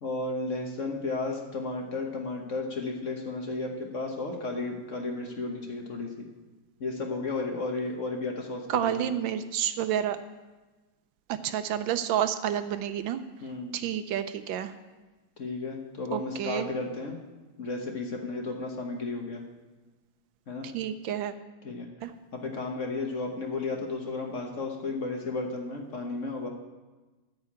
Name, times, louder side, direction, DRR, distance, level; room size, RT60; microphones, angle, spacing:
voice 1, 0.0-6.3 6.8-9.0 13.4-13.8 15.4-17.2 17.6-19.4 20.5-20.7 21.6-21.9 22.3-26.5, left 3 dB, 45° left, 2 dB, 1.2 m, -33 dB
voice 2, 8.7-10.2 11.3-13.2 13.7-14.7 16.1-16.7 20.6-21.3 22.0-22.1, right 10 dB, 75° right, 10 dB, 1.3 m, -29 dB
13.5 x 4.8 x 8.5 m, 1.2 s
omnidirectional pair, 2.2 m